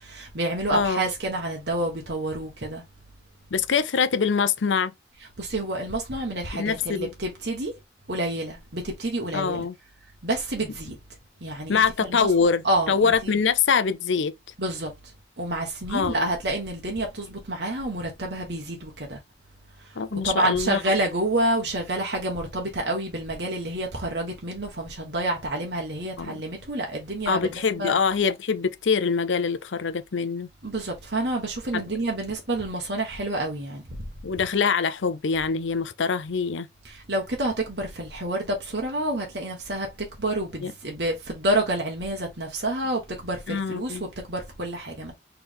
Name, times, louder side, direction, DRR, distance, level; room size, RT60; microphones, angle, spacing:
voice 1, 0.0-2.8 5.4-7.7 8.1-9.6 10.2-10.9 11.4-12.3 12.6-13.4 14.6-14.9 15.4-19.2 20.1-28.0 30.6-33.8 36.8-45.1, right 1 dB, 65° right, 1.3 m, -28 dB
voice 2, 0.7-1.0 3.5-4.9 6.5-7.1 9.3-9.7 11.7-14.3 15.9-16.3 20.0-20.8 26.2-26.4 27.3-30.5 31.7-31.9 34.2-36.7 40.6-40.7 43.5-44.0, left 5 dB, 85° left, 0.6 m, -24 dB
4.4 x 3.4 x 3.4 m
head